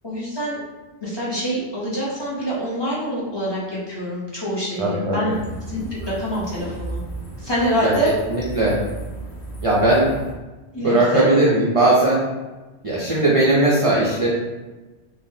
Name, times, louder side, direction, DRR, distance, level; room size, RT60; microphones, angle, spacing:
voice 1, 0.0-0.6 1.0-5.3 5.7-7.0 7.4-8.1 10.7-11.3, equal, 25° left, -8 dB, 0.7 m, -25 dB
voice 2, 4.8-5.3 7.8-7.9 8.3-8.8 9.6-10.1 10.8-12.2 12.8-14.3, right 2 dB, 50° right, -6 dB, 0.4 m, -18 dB
sound 1, 5.3-10.3, right 2 dB, 75° left, 0.9 m, -35 dB
3.3 x 2.1 x 2.6 m, 1.2 s
omnidirectional pair, 1.1 m